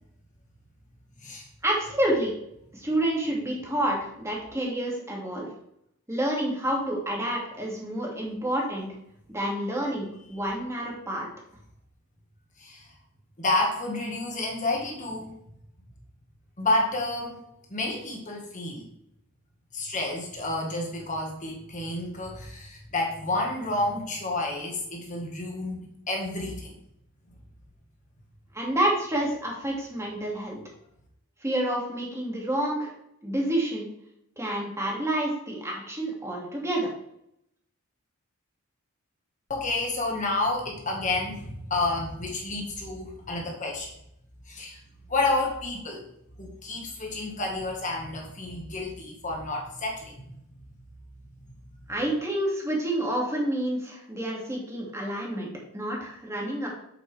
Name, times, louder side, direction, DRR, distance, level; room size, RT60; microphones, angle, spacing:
voice 1, 1.6-2.3 2.7-5.5 6.1-8.9 9.3-11.3 28.5-30.6 31.4-32.9 33.2-33.9 34.4-36.9 51.9-55.5 55.7-56.7, right 1 dB, 15° right, -2 dB, 2.3 m, -28 dB
voice 2, 12.6-12.9 13.4-15.3 16.6-17.4 17.7-18.9 19.7-26.7 39.5-43.9 44.5-44.8 45.1-46.0 46.4-50.3, left 2 dB, 35° left, 0 dB, 1.7 m, -30 dB
8.2 x 7.9 x 3.4 m, 0.76 s
head